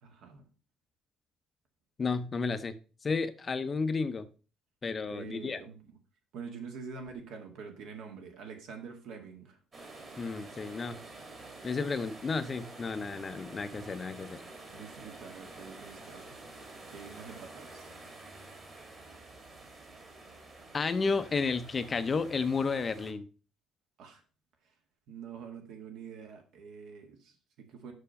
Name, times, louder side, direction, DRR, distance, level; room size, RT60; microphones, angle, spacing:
voice 1, 0.0-0.5 5.1-6.0 6.3-9.6 14.7-16.4 16.9-17.9 24.0-24.2 25.1-27.9, right 6 dB, 70° right, 4 dB, 2.0 m, -46 dB
voice 2, 2.0-2.7 3.0-4.3 4.8-5.6 10.2-11.0 11.6-14.4 20.7-23.3, left 4 dB, 25° left, 12 dB, 0.6 m, -32 dB
sound 1, 9.7-23.1, right 2 dB, 30° right, 1.8 m, -49 dB
6.9 x 6.1 x 5.4 m, 0.36 s
cardioid pair, 170°, 0 cm